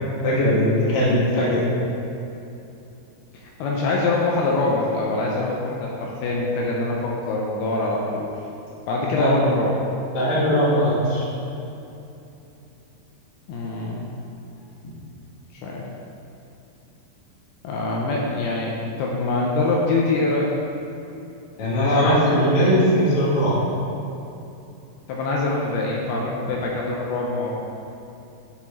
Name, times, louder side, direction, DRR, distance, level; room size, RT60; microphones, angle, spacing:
voice 1, 0.2-1.6 9.1-9.4 10.1-11.2 21.6-23.6, equal, 55° left, -7 dB, 2.6 m, -19 dB
voice 2, 3.3-8.3 8.9-9.8 13.5-14.1 15.6-15.9 17.6-20.5 21.9-22.3 25.1-27.5, left 2 dB, 85° left, -3 dB, 2.6 m, -24 dB
10.5 x 4.5 x 4.3 m, 2.8 s
omnidirectional pair, 4.6 m